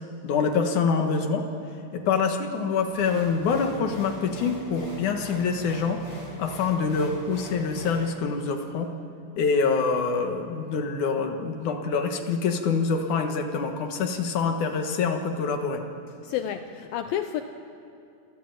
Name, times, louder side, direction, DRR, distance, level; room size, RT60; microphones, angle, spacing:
voice 1, 0.2-1.5 1.9-6.0 6.4-8.9 9.4-15.8, left 5 dB, 60° left, 2.3 m, -25 dB
sound 1, 2.9-8.0, right 1 dB, 20° left, 8.4 m, -42 dB
voice 2, 16.2-17.4, left 10 dB, 85° left, 2.1 m, -30 dB
28.0 x 14.0 x 9.1 m
omnidirectional pair, 5.0 m